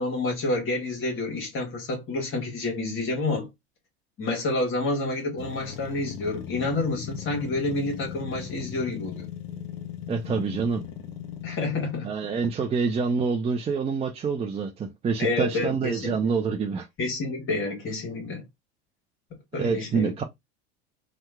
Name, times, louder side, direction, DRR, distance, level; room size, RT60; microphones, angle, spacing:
voice 1, 0.0-3.5 4.2-9.3 11.4-12.1 15.2-16.2 17.0-18.4 19.5-20.1, left 2 dB, 40° left, 1.3 m, -29 dB
sound 1, 5.4-12.2, left 9 dB, 60° left, 0.7 m, -39 dB
voice 2, 10.1-10.8 12.0-16.9 19.6-20.2, right 5 dB, 20° right, 0.4 m, -26 dB
2.8 x 2.2 x 3.5 m
hypercardioid pair, 90°, 32 cm